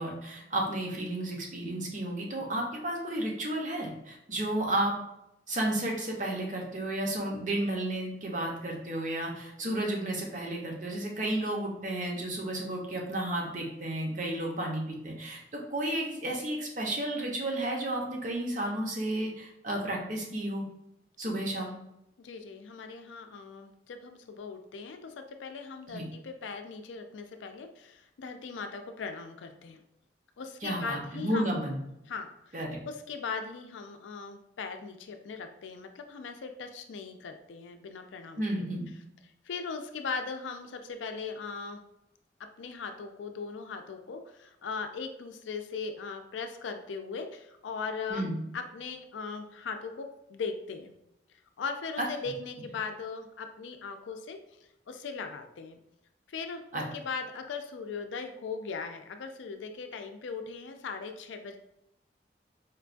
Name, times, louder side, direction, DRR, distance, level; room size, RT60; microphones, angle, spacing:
voice 1, 0.0-4.9 5.5-20.6 21.2-21.7 25.9-26.1 30.6-31.8 32.5-32.8 38.4-38.9 48.1-48.4 52.0-52.1 56.7-56.8, right 1 dB, 45° right, 0 dB, 0.7 m, -32 dB
voice 2, 22.2-29.8 30.4-31.6 32.1-38.7 39.4-41.8 42.6-48.3 48.5-50.9 51.6-54.4 54.9-55.8 56.3-61.6, left 5 dB, 90° left, 6 dB, 0.4 m, -39 dB
4.4 x 2.2 x 2.5 m, 0.84 s
head